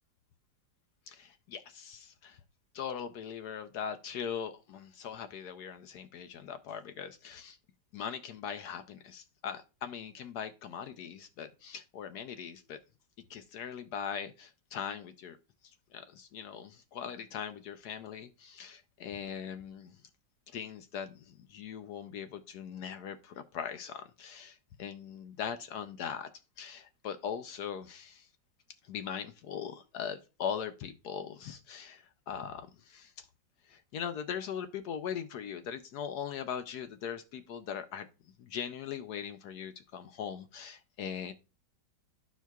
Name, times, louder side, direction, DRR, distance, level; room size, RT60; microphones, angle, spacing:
voice 1, 1.1-2.4 2.7-7.6 7.9-12.8 13.3-15.4 15.6-20.0 20.5-26.3 26.6-28.3 28.9-33.3 33.7-38.1 38.4-41.3, left 8 dB, 70° left, 9 dB, 1.1 m, -40 dB
13.0 x 4.6 x 2.3 m, 0.31 s
omnidirectional pair, 1.9 m